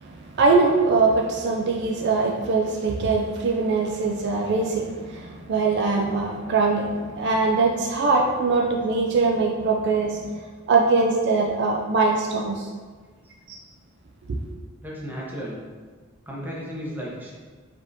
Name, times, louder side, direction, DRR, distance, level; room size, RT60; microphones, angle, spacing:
voice 1, 0.0-10.3 10.7-12.7 13.5-13.6, right 3 dB, 55° right, 1 dB, 0.4 m, -22 dB
voice 2, 14.8-15.6 16.3-17.3, equal, 10° right, -5 dB, 0.8 m, -34 dB
4.9 x 3.6 x 2.7 m, 1.5 s
head